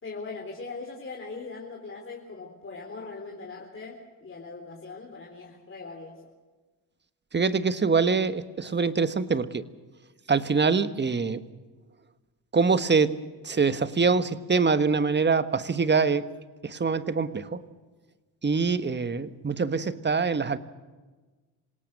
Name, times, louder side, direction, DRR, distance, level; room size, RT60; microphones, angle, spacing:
voice 1, 0.0-6.3, left 4 dB, 30° left, 0 dB, 3.9 m, -40 dB
voice 2, 7.3-9.6 10.3-11.4 12.5-13.2 13.4-16.3 16.6-17.6 18.4-20.6, right 4 dB, 25° right, 12 dB, 1.4 m, -24 dB
26.5 x 18.0 x 6.6 m, 1.3 s
supercardioid pair, 70°, 42 cm